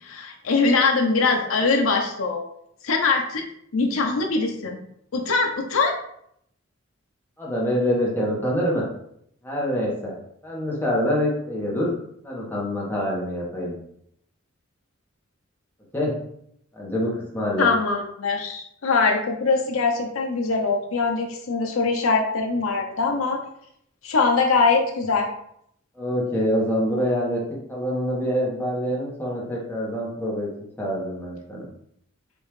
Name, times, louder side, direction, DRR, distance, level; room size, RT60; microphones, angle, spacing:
voice 1, 0.0-2.4 2.8-3.4 3.7-4.8 5.1-5.9 17.6-23.4 24.0-25.3, left 4 dB, 90° left, 2 dB, 0.6 m, -22 dB
voice 2, 7.4-8.8 9.4-10.1 10.4-11.9 12.2-13.7 15.9-16.1 16.7-17.7 26.0-27.4 27.7-30.5 30.8-31.7, equal, 10° left, -5 dB, 1.2 m, -25 dB
5.3 x 2.8 x 3.1 m, 0.71 s
head